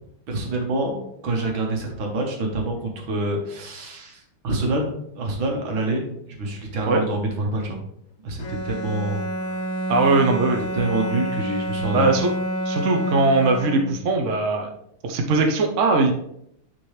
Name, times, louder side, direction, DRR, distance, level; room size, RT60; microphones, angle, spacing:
voice 1, 0.3-7.8 8.2-9.7 10.7-12.1, right 2 dB, 70° right, 1 dB, 2.1 m, -27 dB
Bowed string instrument, 8.4-14.2, right 1 dB, 60° left, 0.8 m, -28 dB
voice 2, 9.9-10.6 11.9-12.3 12.6-14.7 15.0-16.1, right 3 dB, 50° right, 3 dB, 0.9 m, -20 dB
9.7 x 4.4 x 3.3 m, 0.73 s
omnidirectional pair, 2.3 m